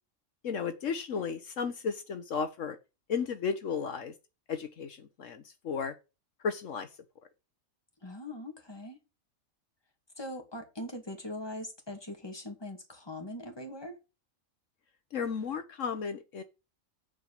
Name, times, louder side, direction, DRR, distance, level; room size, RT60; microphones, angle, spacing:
voice 1, 0.4-2.8 3.1-4.1 4.5-5.9 6.4-6.9 15.1-16.4, left 6 dB, 70° left, 1.3 m, -34 dB
voice 2, 8.0-9.0 10.2-14.0, left 1 dB, 20° left, 2.2 m, -41 dB
9.0 x 5.2 x 7.3 m
omnidirectional pair, 1.4 m